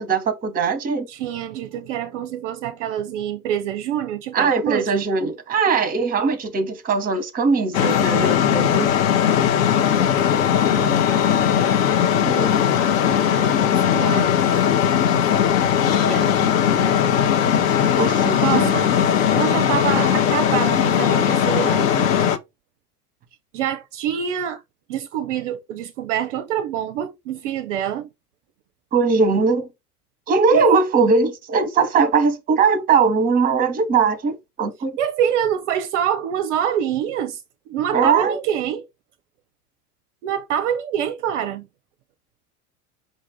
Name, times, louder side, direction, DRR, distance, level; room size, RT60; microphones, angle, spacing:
voice 1, 0.0-1.1 4.3-8.9 12.2-12.6 18.0-18.7 28.9-29.7 30.3-34.9 37.9-38.4, right 5 dB, 20° right, 0.8 m, -20 dB
voice 2, 1.1-5.1 10.7-11.1 13.1-14.4 16.1-16.3 16.6-16.9 18.4-18.9 19.3-22.1 23.5-24.6 24.9-28.1 30.5-30.7 35.0-37.4 37.7-38.8 40.2-41.7, right 9 dB, 50° right, 0.5 m, -26 dB
sound 1, 7.7-22.4, left 8 dB, 60° left, 0.7 m, -19 dB
5.2 x 2.4 x 3.5 m
figure-of-eight pair, 80°, 47 cm